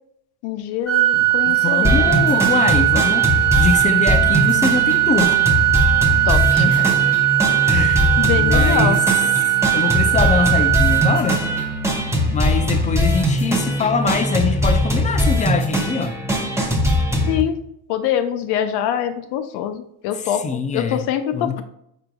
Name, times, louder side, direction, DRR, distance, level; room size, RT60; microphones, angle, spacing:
voice 1, 0.4-2.2 6.3-6.8 7.7-9.0 17.3-17.6 17.9-21.6, left 10 dB, 70° left, 0.5 m, -24 dB
Organ, 0.9-11.9, right 17 dB, 40° left, 1.1 m, -19 dB
voice 2, 1.1-5.4 6.5-6.9 7.6-9.0 9.7-11.4 12.2-16.2 20.1-21.1 21.3-21.6, left 4 dB, 20° left, 0.3 m, -23 dB
sound 1, 1.8-17.4, left 1 dB, 5° right, 0.7 m, -20 dB
5.0 x 4.4 x 2.2 m
supercardioid pair, 105°, 41 cm